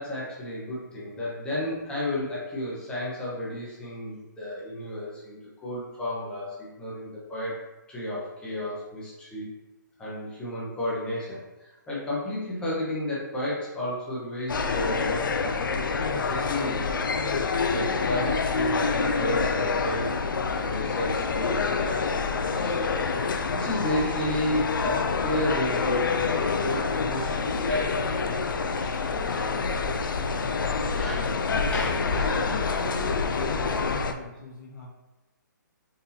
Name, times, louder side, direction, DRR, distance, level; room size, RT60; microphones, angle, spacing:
voice 1, 0.0-9.5 10.0-16.9 17.7-20.2 20.5-26.2 26.6-28.0 28.8-29.8 30.9-32.5, left 1 dB, 10° left, -7 dB, 0.7 m, -33 dB
sound 1, 14.5-34.1, left 4 dB, 90° left, 0.4 m, -27 dB
voice 2, 32.4-34.9, left 2 dB, 65° left, -2 dB, 1.0 m, -39 dB
3.9 x 2.6 x 2.7 m, 1.1 s
hypercardioid pair, 155°, 11 cm